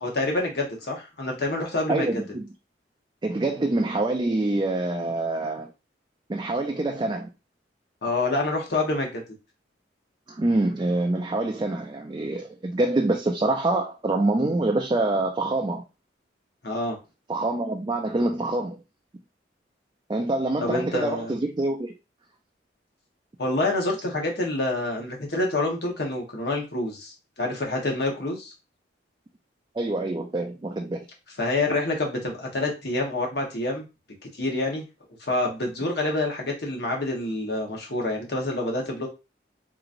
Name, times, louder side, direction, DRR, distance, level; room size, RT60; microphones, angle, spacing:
voice 1, 0.0-2.2 8.0-9.2 16.6-17.0 20.6-21.3 23.4-28.5 31.4-33.8 34.2-34.8 35.2-39.1, left 2 dB, 55° left, 1.1 m, -27 dB
voice 2, 1.9-2.5 3.2-5.7 6.3-7.3 10.3-15.8 17.3-18.8 20.1-21.9 29.7-31.1, right 2 dB, 20° right, 0.3 m, -26 dB
3.8 x 2.9 x 2.5 m
head